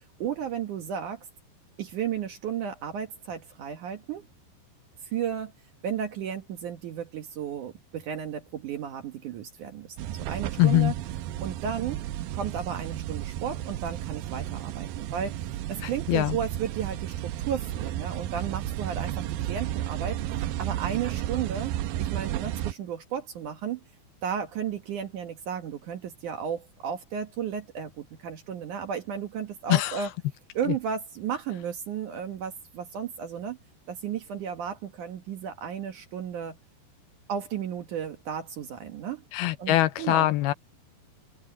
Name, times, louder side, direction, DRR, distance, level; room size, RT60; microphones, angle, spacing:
voice 1, 0.2-1.2 1.8-4.3 5.0-5.5 5.8-10.9 11.4-12.0 12.3-20.2 20.6-21.7 22.0-23.8 24.2-30.1 30.6-33.6 33.9-36.6 37.3-39.2 39.6-40.3, right 8 dB, 60° right, 2.3 m, -34 dB
sound 1, 10.0-22.7, right 13 dB, 80° right, 2.1 m, -33 dB
voice 2, 10.6-10.9 15.8-16.4 29.7-30.1 30.7-30.8 39.3-40.5, left 15 dB, 75° left, 2.5 m, -23 dB
open air
omnidirectional pair, 5.0 m